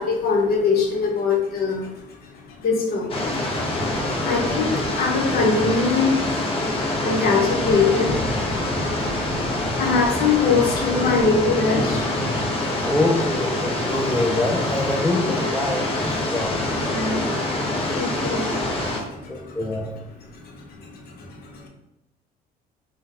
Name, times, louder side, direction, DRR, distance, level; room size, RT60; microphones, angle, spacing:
voice 1, 0.0-12.9 16.7-19.6 20.3-21.7, left 4 dB, 65° left, 1 dB, 1.0 m, -24 dB
sound 1, 3.1-19.0, left 1 dB, 35° left, 0.8 m, -25 dB
voice 2, 12.8-16.9 19.3-19.9, left 2 dB, 5° left, 2 dB, 0.4 m, -25 dB
3.7 x 2.3 x 4.2 m, 0.90 s
cardioid pair, 110°, 17 cm